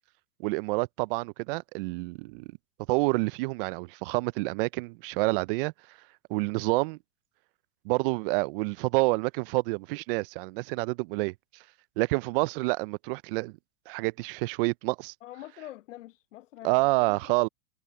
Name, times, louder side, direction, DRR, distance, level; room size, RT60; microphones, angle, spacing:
voice 1, 0.4-2.4 2.9-5.7 6.3-7.0 7.8-11.3 12.0-13.5 13.9-15.1 16.6-17.5, right 25 dB, 50° right, 0.5 m, -28 dB
voice 2, 15.2-17.2, left 14 dB, 80° left, 1.2 m, -45 dB
hypercardioid pair, 125°, 37 cm